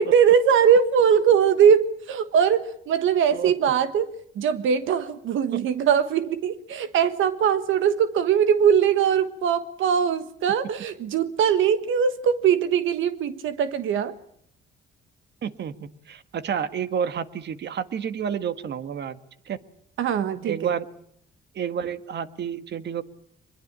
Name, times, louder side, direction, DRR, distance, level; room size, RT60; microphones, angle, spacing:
voice 1, 0.0-4.1 4.4-14.1 20.0-20.6, right 7 dB, 80° right, 10 dB, 1.5 m, -21 dB
voice 2, 15.4-15.8 16.1-19.2 19.4-19.6 20.4-20.9 21.5-23.0, right 7 dB, 60° right, 11 dB, 1.7 m, -29 dB
23.0 x 22.0 x 8.9 m, 0.68 s
cardioid pair, 90°, 20 cm